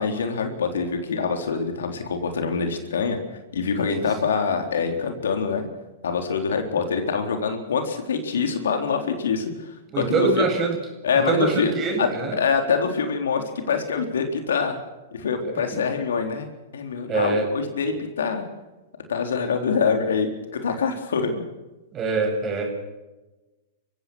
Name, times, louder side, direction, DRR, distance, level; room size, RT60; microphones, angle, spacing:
voice 1, 0.0-3.2 3.5-5.6 6.0-10.4 11.0-11.7 12.0-14.8 15.1-16.5 16.7-18.4 19.1-21.4, left 5 dB, 75° left, 5 dB, 3.9 m, -25 dB
voice 2, 9.9-10.8 11.3-12.4 15.4-15.9 17.1-17.5 21.9-22.7, right 4 dB, 30° right, 3 dB, 7.6 m, -24 dB
30.0 x 16.0 x 6.3 m, 1.1 s
hypercardioid pair, 110°, 0 cm